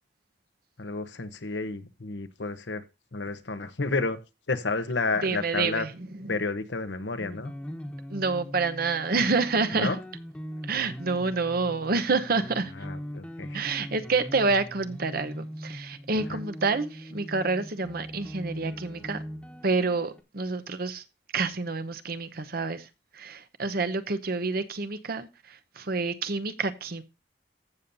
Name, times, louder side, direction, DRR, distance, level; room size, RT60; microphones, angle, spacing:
voice 1, 0.8-2.8 3.1-4.2 4.5-5.9 6.3-7.5 9.7-10.0 12.8-13.6 16.3-16.4, left 3 dB, 75° left, 1.0 m, -31 dB
voice 2, 5.2-5.9 6.2-6.3 8.1-9.9 10.6-12.7 13.5-19.2 19.6-21.0 21.3-22.9 23.1-27.0, right 4 dB, 55° right, 0.9 m, -28 dB
sound 1, 7.2-20.2, equal, 5° left, 1.3 m, -41 dB
15.0 x 7.1 x 2.7 m
head